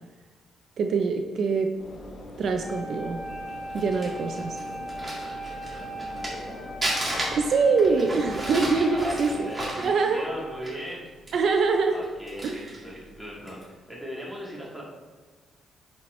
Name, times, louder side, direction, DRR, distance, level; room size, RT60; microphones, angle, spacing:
voice 1, 0.8-1.7 2.4-3.2 3.7-4.6 7.3-9.5 9.8-10.2 11.3-12.0 12.4-12.7, right 4 dB, 60° right, 4 dB, 0.5 m, -24 dB
Train / Engine / Alarm, 1.7-10.0, left 1 dB, 40° left, 0.9 m, -43 dB
Wind instrument woodwind instrument, 2.6-10.9, equal, 80° left, 2.2 m, -39 dB
Crumpling crinkling, 3.5-6.5 6.8-10.9 11.3-11.4 11.9-12.8 13.4-13.6, right 1 dB, 20° right, 2.0 m, -33 dB
voice 2, 5.2-6.6 7.6-8.2 8.5-11.1 11.9-14.8, equal, ahead, -5 dB, 2.1 m, -39 dB
9.3 x 4.5 x 3.2 m, 1.3 s
cardioid pair, 95°, 0 cm